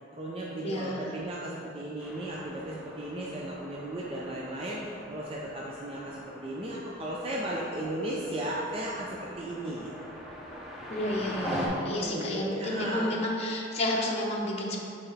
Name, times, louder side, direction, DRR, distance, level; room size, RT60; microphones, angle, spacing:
voice 1, 0.1-10.1 11.8-13.2, right 1 dB, 30° right, -4 dB, 0.5 m, -35 dB
voice 2, 0.6-1.1 10.9-14.8, left 1 dB, 35° left, -3 dB, 0.7 m, -31 dB
sound 1, 2.0-11.7, equal, 5° right, 1.0 m, -42 dB
6.8 x 4.2 x 3.3 m, 2.7 s
head